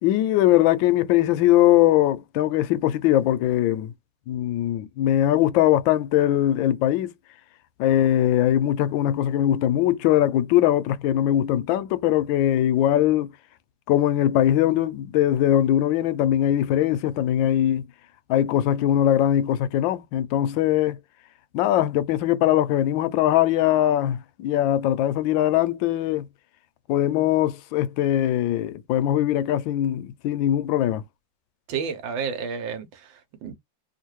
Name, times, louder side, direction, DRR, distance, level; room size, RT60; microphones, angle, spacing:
voice 1, 0.0-3.9 4.3-7.1 7.8-13.3 13.9-17.9 18.3-21.0 21.5-26.3 26.9-31.0, left 12 dB, 80° left, 1.3 m, -21 dB
voice 2, 31.7-33.6, right 6 dB, 80° right, 1.6 m, -31 dB
3.6 x 2.4 x 3.0 m
omnidirectional pair, 2.1 m